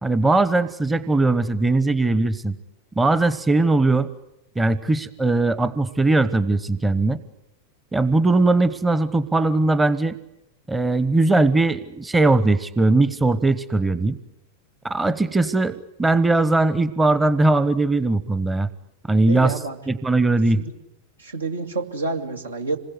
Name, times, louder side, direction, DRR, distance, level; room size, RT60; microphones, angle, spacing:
voice 1, 0.0-2.6 3.0-4.1 4.6-7.2 7.9-10.2 10.7-14.2 14.8-18.7 19.1-19.5 19.9-20.6, right 2 dB, 10° right, 14 dB, 1.0 m, -20 dB
voice 2, 19.3-19.8 20.5-20.7 21.2-22.8, right 3 dB, 75° right, 4 dB, 2.4 m, -28 dB
27.0 x 21.0 x 9.7 m, 0.84 s
figure-of-eight pair, 90°, 0 cm